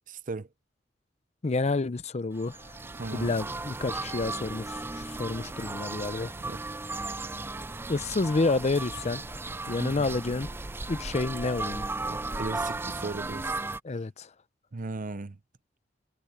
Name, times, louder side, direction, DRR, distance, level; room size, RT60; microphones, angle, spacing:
voice 1, 0.1-0.5 2.9-3.4 6.4-6.6 9.8-10.1 12.1-13.5 14.7-15.4, right 3 dB, 45° right, 0.7 m, -37 dB
voice 2, 1.4-2.6 3.1-4.8 5.1-6.3 7.9-9.2 9.7-10.5 10.9-11.9 13.8-14.3, left 3 dB, 40° left, 0.6 m, -29 dB
sound 1, 2.4-13.8, right 2 dB, 15° right, 0.4 m, -36 dB
head